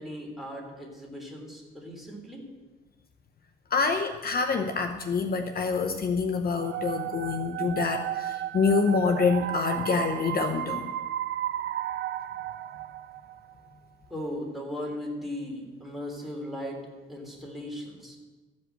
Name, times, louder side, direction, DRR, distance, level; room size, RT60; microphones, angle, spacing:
voice 1, 0.0-2.5 14.1-16.8 17.1-18.2, left 1 dB, ahead, -1 dB, 3.3 m, -37 dB
voice 2, 3.7-10.9, left 5 dB, 50° left, 7 dB, 0.8 m, -26 dB
sound 1, 6.6-13.4, right 12 dB, 65° right, 0.5 m, -33 dB
14.0 x 5.3 x 7.9 m, 1.3 s
cardioid pair, 90°, 20 cm